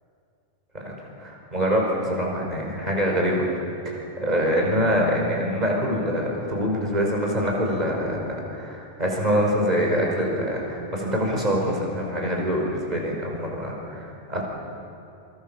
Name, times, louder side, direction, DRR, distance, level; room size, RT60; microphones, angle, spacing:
voice 1, 1.2-3.5 3.8-14.4, equal, 35° right, -2 dB, 5.4 m, -25 dB
27.5 x 24.5 x 7.3 m, 2.5 s
omnidirectional pair, 1.2 m